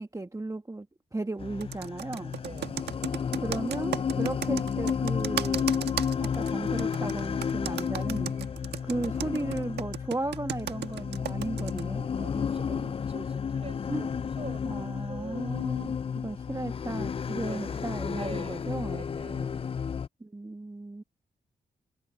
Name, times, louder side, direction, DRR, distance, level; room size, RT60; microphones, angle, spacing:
voice 1, 0.0-2.4 3.4-8.3 8.8-12.1 13.9-14.1 14.6-19.0 20.2-21.0, right 2 dB, 20° right, 1.5 m, -35 dB
sound 1, 1.4-20.1, left 6 dB, 35° left, 0.4 m, -32 dB
Computer keyboard, 1.6-11.8, right 9 dB, 75° right, 1.5 m, -35 dB
voice 2, 2.4-2.9 12.1-15.8 17.4-19.8, right 3 dB, 35° right, 6.3 m, -45 dB
supercardioid pair, 45°, 18 cm